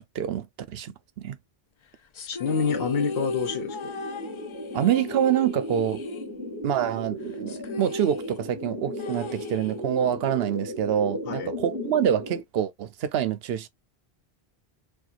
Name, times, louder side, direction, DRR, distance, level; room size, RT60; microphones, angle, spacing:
voice 1, 0.1-1.4 4.7-6.0 6.6-13.7, right 10 dB, 75° right, 0.8 m, -26 dB
sound 1, 2.1-6.8 7.1-7.2 7.5-10.1, left 3 dB, 55° left, 0.3 m, -37 dB
voice 2, 2.3-3.9 11.3-11.5, left 6 dB, 70° left, 0.9 m, -28 dB
sound 2, 2.4-12.4, left 1 dB, 15° right, 2.4 m, -36 dB
4.4 x 2.3 x 2.4 m
omnidirectional pair, 1.0 m